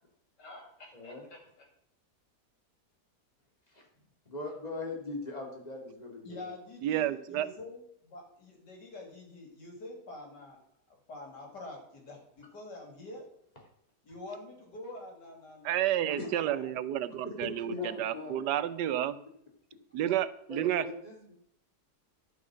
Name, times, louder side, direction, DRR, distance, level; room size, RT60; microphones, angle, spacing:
voice 1, 0.4-1.6 6.2-10.6 11.1-13.3 14.0-16.7, left 2 dB, 85° left, 1 dB, 3.3 m, -47 dB
voice 2, 0.9-1.3 3.7-3.9 4.3-6.5 16.2-16.3 17.2-18.9 20.5-21.3, left 2 dB, 25° left, 0 dB, 2.7 m, -40 dB
voice 3, 6.8-7.5 15.6-19.2 19.9-20.8, right 12 dB, 85° right, 14 dB, 1.3 m, -30 dB
11.5 x 5.4 x 6.1 m, 0.72 s
omnidirectional pair, 1.8 m